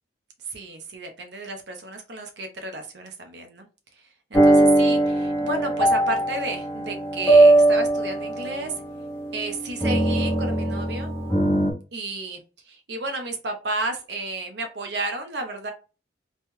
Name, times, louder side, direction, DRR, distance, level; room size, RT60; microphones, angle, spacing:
voice 1, 0.4-3.7 4.0-8.7 9.3-11.1 11.9-15.7, right 2 dB, 70° right, 5 dB, 0.8 m, -32 dB
sound 1, 4.3-11.7, right 2 dB, 15° left, 0.8 m, -20 dB
3.4 x 3.0 x 2.2 m, 0.32 s
head